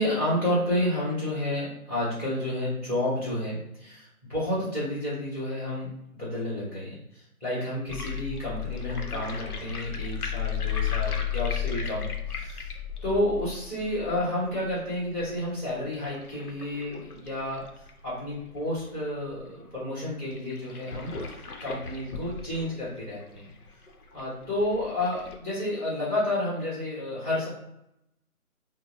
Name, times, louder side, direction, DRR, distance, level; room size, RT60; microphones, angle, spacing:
voice 1, 0.0-6.9 7.4-12.7 13.0-17.6 18.0-21.1 21.6-23.5 24.1-27.5, left 1 dB, 5° right, -13 dB, 1.0 m, -30 dB
sound 1, 7.9-18.9 19.3-19.4 19.6-19.7 20.3-25.4, left 9 dB, 80° left, 0.7 m, -35 dB
4.8 x 2.0 x 2.2 m, 0.80 s
figure-of-eight pair, 160°, 44 cm